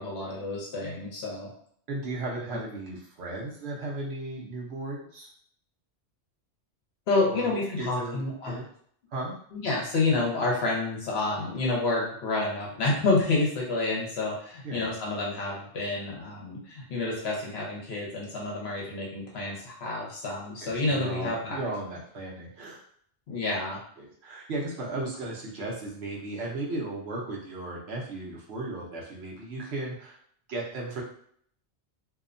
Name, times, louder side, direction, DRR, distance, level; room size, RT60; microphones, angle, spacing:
voice 1, 0.0-1.5 7.1-8.6 9.5-21.6 23.3-23.8, left 2 dB, 65° left, -3 dB, 1.0 m, -29 dB
voice 2, 1.9-5.3 7.3-7.5 7.8-8.6 9.1-9.3 14.6-15.0 20.6-22.8 24.0-30.2 30.5-31.0, right 2 dB, 70° right, -3 dB, 0.9 m, -35 dB
2.7 x 2.1 x 2.5 m, 0.62 s
omnidirectional pair, 1.2 m